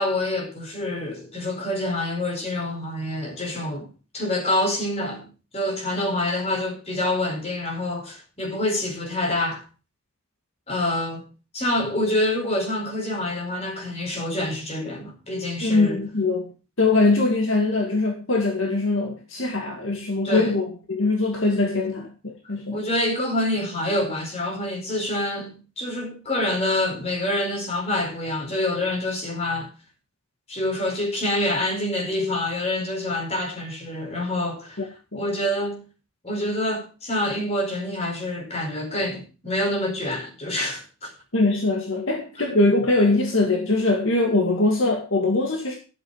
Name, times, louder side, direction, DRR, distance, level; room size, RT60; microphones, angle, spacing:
voice 1, 0.0-5.3 5.5-9.6 10.7-11.2 11.5-16.0 20.2-20.6 22.7-29.7 30.5-34.9 35.1-35.8 36.2-41.1 42.1-42.4, left 1 dB, 30° left, 4.9 m, -26 dB
voice 2, 15.6-16.5 16.8-22.8 41.3-45.8, left 2 dB, 65° left, 2.1 m, -22 dB
13.0 x 7.9 x 5.6 m
head